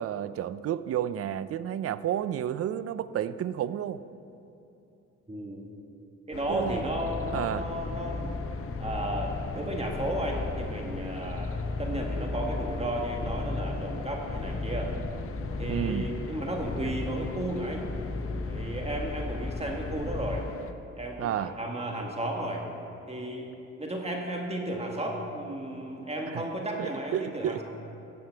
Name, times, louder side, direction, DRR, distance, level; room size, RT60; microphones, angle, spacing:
voice 1, 0.0-4.0 6.5-6.9 7.3-7.7 15.7-16.1 21.2-21.6 26.3-26.4 26.8-27.6, right 10 dB, 50° right, 15 dB, 0.5 m, -31 dB
voice 2, 5.3-5.8 6.3-8.3 8.8-14.9 15.6-17.8 18.5-20.4 21.0-22.6 23.1-23.5 23.8-27.6, right 1 dB, 20° right, 0 dB, 1.6 m, -33 dB
sound 1, 6.3-20.7, left 6 dB, 45° left, 0.8 m, -42 dB
sound 2, 6.5-20.4, left 3 dB, 15° left, 0.5 m, -35 dB
15.5 x 8.6 x 4.6 m, 2.8 s
cardioid pair, 90°, 30 cm